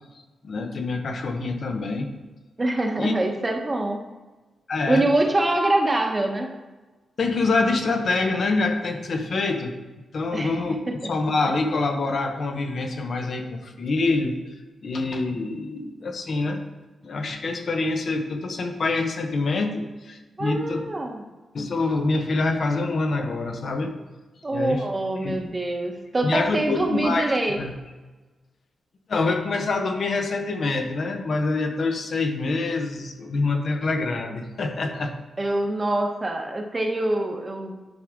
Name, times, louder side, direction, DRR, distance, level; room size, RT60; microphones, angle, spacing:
voice 1, 0.4-2.1 3.0-3.1 4.7-5.1 7.2-9.7 10.1-14.4 14.8-16.6 17.0-20.8 21.5-23.9 24.5-24.8 25.2-25.4 26.2-27.7 29.1-35.1, left 3 dB, 55° left, 4 dB, 0.9 m, -26 dB
voice 2, 2.6-4.0 4.9-6.5 10.3-10.5 10.9-11.1 20.4-21.2 24.4-27.6 35.4-37.8, right 1 dB, 25° right, 3 dB, 1.0 m, -24 dB
10.5 x 4.8 x 3.6 m, 1.2 s
cardioid pair, 100°, 0 cm